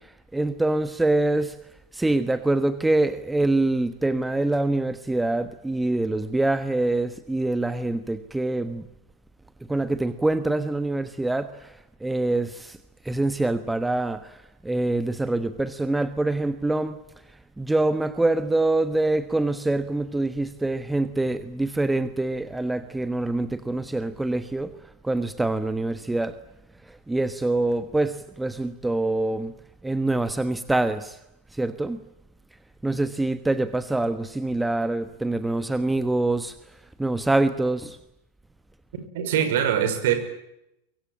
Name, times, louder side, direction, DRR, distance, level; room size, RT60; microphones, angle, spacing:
voice 1, 0.0-1.6 1.9-8.9 9.7-12.8 13.0-17.0 17.6-26.4 26.9-29.5 29.8-31.2 31.5-32.0 32.8-36.5 37.0-38.0, right 2 dB, 5° right, 11 dB, 1.2 m, -25 dB
voice 2, 39.1-40.1, right 9 dB, 55° right, 7 dB, 5.7 m, -22 dB
24.5 x 23.5 x 8.9 m, 0.84 s
figure-of-eight pair, 90°, 0 cm